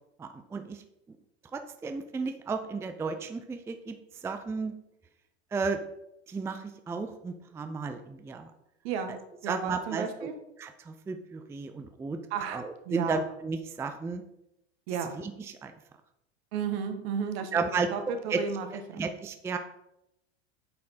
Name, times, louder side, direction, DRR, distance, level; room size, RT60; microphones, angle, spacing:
voice 1, 0.2-0.8 1.5-4.0 4.2-4.7 5.5-5.9 6.3-8.5 9.5-10.3 10.6-12.2 12.5-14.2 15.2-15.7 17.5-17.9 18.3-18.4 19.0-19.6, right 4 dB, 10° right, 7 dB, 0.4 m, -33 dB
voice 2, 8.8-9.1 9.4-10.3 12.3-13.2 14.9-15.2 16.5-19.0, right 7 dB, 65° right, 7 dB, 1.3 m, -33 dB
8.6 x 4.3 x 4.1 m, 0.85 s
hypercardioid pair, 100°, 34 cm